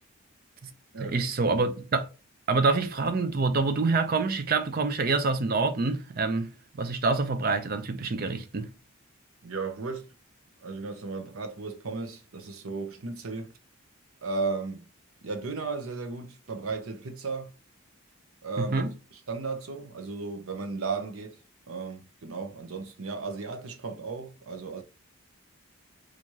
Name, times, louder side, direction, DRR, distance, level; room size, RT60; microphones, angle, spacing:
voice 1, 1.0-2.1 2.5-6.5 6.8-8.7 18.6-18.9, right 3 dB, 45° right, 0.5 m, -26 dB
voice 2, 9.4-10.1 10.6-13.5 14.2-14.9 15.2-17.5 18.4-18.8 19.1-21.4 21.7-24.8, right 4 dB, 80° right, 0.7 m, -35 dB
4.5 x 2.5 x 2.8 m
head